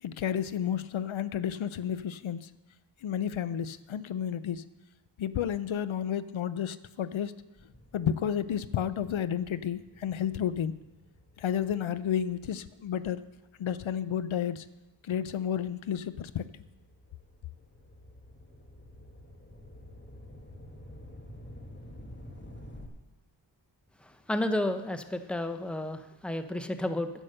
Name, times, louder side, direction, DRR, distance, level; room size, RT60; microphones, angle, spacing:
voice 1, 0.0-2.5 3.0-4.6 5.2-7.3 7.9-10.8 11.4-13.2 13.6-14.7 15.0-16.6, left 9 dB, 90° left, 14 dB, 0.6 m, -31 dB
sound 1, 7.6-14.3 14.9-22.9, left 1 dB, 25° left, 1.5 m, -51 dB
voice 2, 24.0-27.1, left 1 dB, ahead, 8 dB, 0.7 m, -32 dB
10.0 x 8.1 x 6.5 m, 1.0 s
wide cardioid pair, 85°, 46 cm